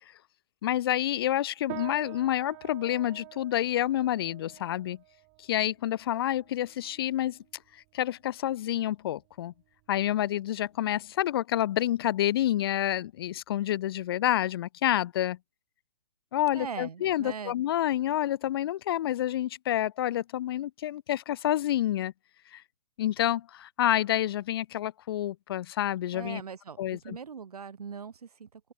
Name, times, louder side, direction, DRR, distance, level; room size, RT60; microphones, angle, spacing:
voice 1, 0.6-5.0 5.4-7.4 7.9-9.5 9.9-15.4 16.3-22.1 22.5-22.6 23.0-26.4 26.8-27.2, left 12 dB, 40° left, 0.5 m, -28 dB
sound 1, 1.7-11.3, right 40 dB or more, 25° right, 0.8 m, -48 dB
voice 2, 16.5-17.5 26.1-28.6, right 6 dB, 85° right, 5.9 m, -40 dB
hypercardioid pair, 155°, 19 cm